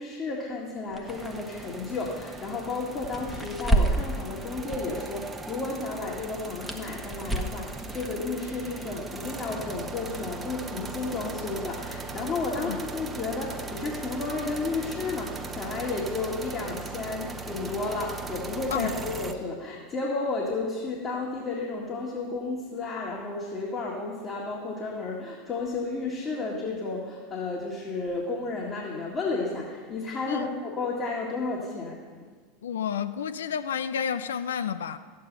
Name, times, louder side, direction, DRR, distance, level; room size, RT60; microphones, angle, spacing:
voice 1, 0.0-32.0, left 3 dB, 30° left, -3 dB, 2.1 m, -32 dB
sound 1, 0.9-5.5 5.8-9.3, right 1 dB, ahead, 1.3 m, -31 dB
sound 2, 1.1-19.3, right 3 dB, 15° right, 1.0 m, -39 dB
voice 2, 32.6-35.0, left 8 dB, 70° left, 11 dB, 0.5 m, -30 dB
13.5 x 8.5 x 5.6 m, 1.5 s
figure-of-eight pair, 80°, 0 cm